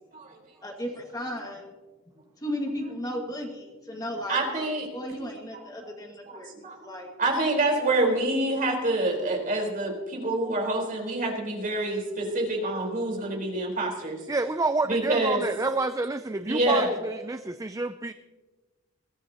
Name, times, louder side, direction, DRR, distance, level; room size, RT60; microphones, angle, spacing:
voice 1, 0.6-1.7 2.4-7.1, equal, 15° left, 1 dB, 1.9 m, -35 dB
voice 2, 4.3-4.9 6.3-6.8 7.2-14.2 14.9-15.4 16.5-16.9, right 2 dB, 40° right, 0 dB, 4.3 m, -27 dB
voice 3, 14.3-18.1, right 3 dB, 15° right, 10 dB, 0.4 m, -28 dB
22.0 x 16.0 x 2.9 m, 1.2 s
head